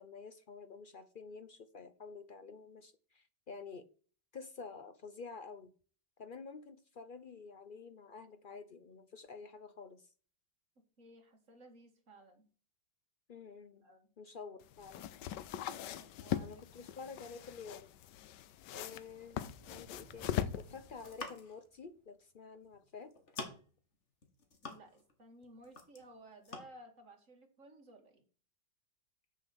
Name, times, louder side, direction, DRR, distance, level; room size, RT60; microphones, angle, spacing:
voice 1, 0.0-3.9 4.3-5.7 6.2-10.1 13.3-13.8 14.2-15.0 16.4-17.9 18.7-19.4 19.7-23.1, left 5 dB, 60° left, 0.5 m, -50 dB
voice 2, 11.0-12.5 13.8-14.1 16.0-17.2 24.6-28.2, right 1 dB, 45° right, 2.5 m, -57 dB
sound 1, 14.6-21.1, left 11 dB, 80° left, 1.3 m, -41 dB
sound 2, 19.3-22.0, right 3 dB, 30° right, 0.6 m, -58 dB
sound 3, 20.9-21.7 22.6-22.8 23.1-23.8 24.2-25.2 25.4-26.1 26.4-26.6, left 3 dB, 40° left, 1.8 m, -47 dB
7.9 x 6.7 x 6.3 m
omnidirectional pair, 1.9 m